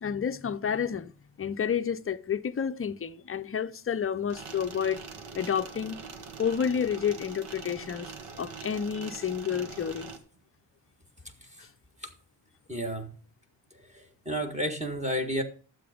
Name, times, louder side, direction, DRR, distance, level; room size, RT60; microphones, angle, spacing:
voice 1, 0.0-1.1 1.4-5.0 5.3-6.0 6.4-8.1 8.4-10.1, left 7 dB, 30° left, 0.6 m, -30 dB
sound 1, 4.3-10.2, right 5 dB, 80° right, 1.9 m, -43 dB
voice 2, 12.7-13.1 13.9-15.4, equal, 15° right, 1.8 m, -31 dB
12.0 x 7.9 x 5.1 m
wide cardioid pair, 145°, 49 cm